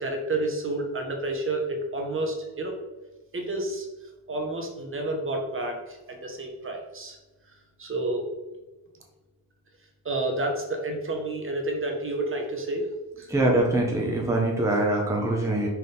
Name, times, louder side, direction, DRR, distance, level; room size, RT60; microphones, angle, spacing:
voice 1, 0.0-2.7 3.3-3.9 4.3-7.2 7.8-8.3 10.0-12.9 13.2-13.3, right 2 dB, 30° right, 2 dB, 1.4 m, -30 dB
voice 2, 13.3-15.7, right 1 dB, 5° right, -1 dB, 1.1 m, -23 dB
5.7 x 4.9 x 4.0 m, 1.1 s
cardioid pair, 115°, 40 cm